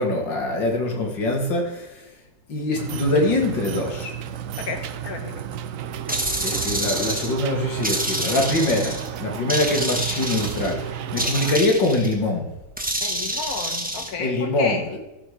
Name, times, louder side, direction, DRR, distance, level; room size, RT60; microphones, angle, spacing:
voice 1, 0.0-2.0 2.5-4.1 6.4-12.4 14.2-15.0, left 2 dB, 90° left, 1 dB, 2.7 m, -23 dB
sound 1, 2.8-11.6, right 9 dB, 65° right, 0.8 m, -32 dB
voice 2, 4.7-5.4 13.0-14.9, left 5 dB, 55° left, 6 dB, 1.6 m, -32 dB
sound 2, 6.1-7.4 7.8-9.1 9.5-10.7 11.2-12.1 12.8-14.1, right 1 dB, 5° right, 0.8 m, -27 dB
13.5 x 6.9 x 4.9 m, 0.97 s
omnidirectional pair, 2.0 m